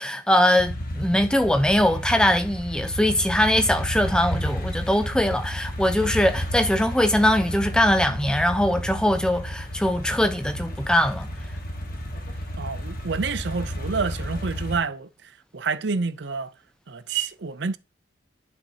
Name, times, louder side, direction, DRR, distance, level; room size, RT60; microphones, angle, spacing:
voice 1, 0.0-11.3, left 1 dB, 5° left, 0.8 m, -21 dB
sound 1, 0.6-14.8, equal, 50° left, 1.4 m, -32 dB
voice 2, 12.6-16.5 16.9-17.8, right 4 dB, 65° right, 0.6 m, -28 dB
10.5 x 5.8 x 2.8 m
head